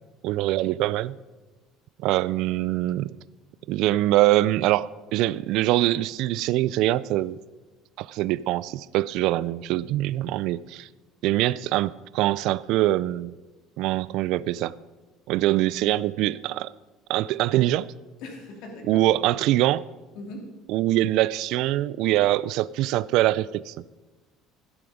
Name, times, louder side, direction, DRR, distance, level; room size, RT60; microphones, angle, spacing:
voice 1, 0.2-1.2 2.0-3.2 3.7-7.4 8.0-10.9 11.2-13.3 13.8-14.7 15.3-16.7 17.1-17.9 18.9-19.8 20.7-23.7, right 15 dB, 65° right, 0.3 m, -23 dB
voice 2, 18.2-19.4 20.2-20.5, left 2 dB, 65° left, 2.8 m, -40 dB
14.5 x 10.0 x 5.0 m
cardioid pair, 145°, 0 cm